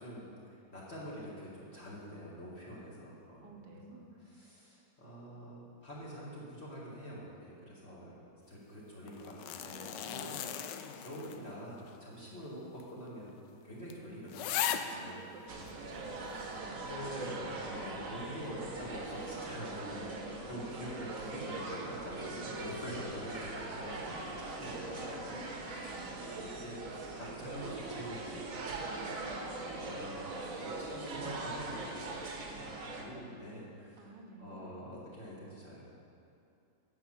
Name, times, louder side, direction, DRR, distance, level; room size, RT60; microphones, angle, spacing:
voice 1, 0.0-3.5 3.9-10.3 11.0-13.3 13.6-15.3 16.7-20.0 20.5-25.4 25.7-26.1 26.4-28.9 29.6-32.6 33.0-36.0, equal, 35° left, -7 dB, 1.9 m, -46 dB
voice 2, 3.4-4.1 10.0-10.7 14.9-17.2 17.6-18.0 19.8-20.3 21.0-21.3 22.2-22.8 24.0-24.3 25.3-26.5 28.9-29.8 34.0-34.8, right 2 dB, 75° right, 3 dB, 1.6 m, -53 dB
sound 1, 9.1-11.6 11.9-12.0 12.8-12.9 13.3-13.4 13.9-14.0 14.3-15.0 15.7-15.8, left 9 dB, 75° left, 1.2 m, -37 dB
sound 2, 15.5-33.0, right 2 dB, 50° right, 1.3 m, -41 dB
9.3 x 5.9 x 7.2 m, 2.6 s
omnidirectional pair, 2.0 m